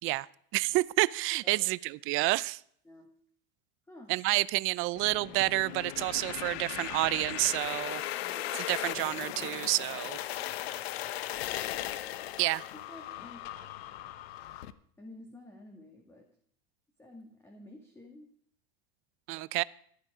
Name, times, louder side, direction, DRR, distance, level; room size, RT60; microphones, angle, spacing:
voice 1, 0.5-2.6 4.1-8.0 8.5-10.2 12.4-12.6 19.3-19.6, right 21 dB, 45° right, 0.5 m, -29 dB
sound 1, 5.0-14.7, left 13 dB, 80° left, 1.0 m, -38 dB
voice 2, 8.2-8.6 12.7-13.5 15.0-16.3 17.0-18.3, left 1 dB, 10° left, 1.9 m, -51 dB
15.0 x 12.0 x 4.9 m
supercardioid pair, 130°, 30 cm